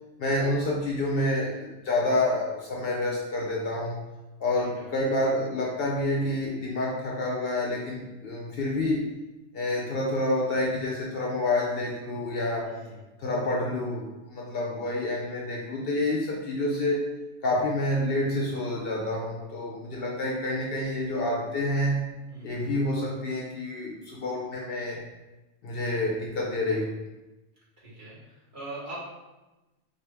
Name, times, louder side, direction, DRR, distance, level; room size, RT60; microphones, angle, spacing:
voice 1, 0.2-4.0 4.4-9.1 9.5-12.7 13.2-17.0 17.4-22.0 22.4-25.0 25.6-26.9, left 1 dB, 60° left, -2 dB, 0.8 m, -28 dB
voice 2, 12.6-13.1 22.3-22.7 27.8-29.0, right 2 dB, 45° right, -8 dB, 1.5 m, -42 dB
4.7 x 2.4 x 3.3 m, 1.1 s
omnidirectional pair, 1.3 m